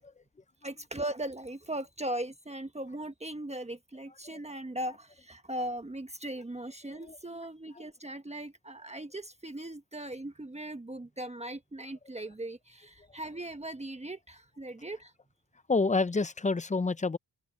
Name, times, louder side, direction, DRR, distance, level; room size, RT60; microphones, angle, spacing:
voice 1, 0.6-15.1, right 1 dB, 15° right, 1.4 m, -39 dB
voice 2, 15.7-17.2, left 3 dB, 15° left, 0.7 m, -28 dB
open air
cardioid pair, 95°, 44 cm